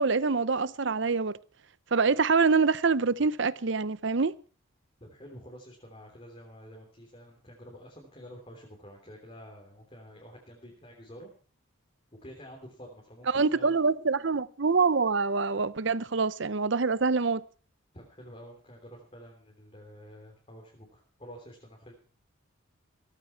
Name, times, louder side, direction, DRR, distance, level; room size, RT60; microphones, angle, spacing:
voice 1, 0.0-1.3 1.9-4.3 13.3-17.4, right 4 dB, 60° right, 0.7 m, -25 dB
voice 2, 5.0-11.3 12.2-13.7 17.9-21.9, equal, 25° left, 3.3 m, -49 dB
17.5 x 14.0 x 4.6 m
head